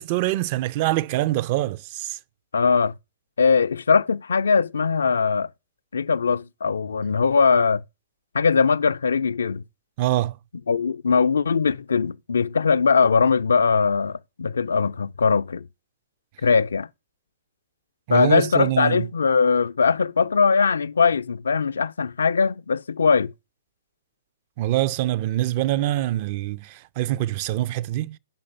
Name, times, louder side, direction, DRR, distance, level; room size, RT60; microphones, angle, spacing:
voice 1, 0.0-2.2 10.0-10.4 18.1-19.1 24.6-28.2, right 15 dB, 40° right, 0.4 m, -24 dB
voice 2, 2.5-2.9 3.4-5.5 5.9-7.8 8.3-9.6 10.7-15.7 16.4-16.9 18.1-23.3, left 5 dB, 75° left, 0.4 m, -20 dB
5.2 x 5.1 x 5.5 m
hypercardioid pair, 125°, 0 cm